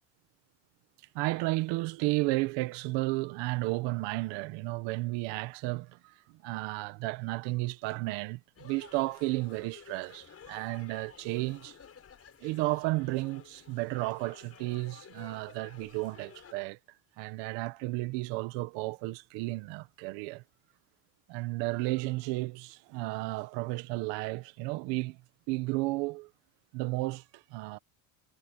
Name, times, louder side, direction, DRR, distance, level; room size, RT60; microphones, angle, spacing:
voice 1, 1.1-6.1 6.4-11.8 12.4-16.8 17.2-20.4 21.3-25.2 25.5-26.3 26.7-27.8, right 22 dB, 80° right, 1.6 m, -33 dB
sound 1, 8.6-16.5, left 7 dB, 35° left, 5.0 m, -54 dB
cardioid pair, 115°, 42 cm